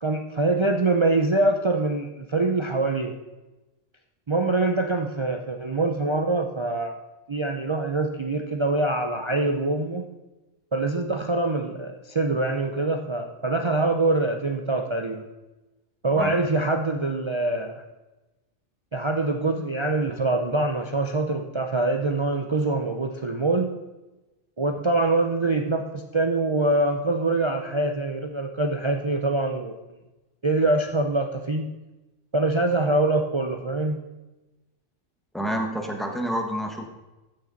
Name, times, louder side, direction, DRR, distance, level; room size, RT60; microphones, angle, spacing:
voice 1, 0.0-3.1 4.3-7.0 7.3-10.0 10.7-15.2 16.0-17.8 18.9-23.7 24.6-29.7 30.4-31.7 32.3-34.0, right 2 dB, 40° right, 4 dB, 0.4 m, -24 dB
voice 2, 35.3-36.9, equal, ahead, 2 dB, 1.1 m, -28 dB
14.0 x 6.7 x 4.0 m, 1.1 s
omnidirectional pair, 1.3 m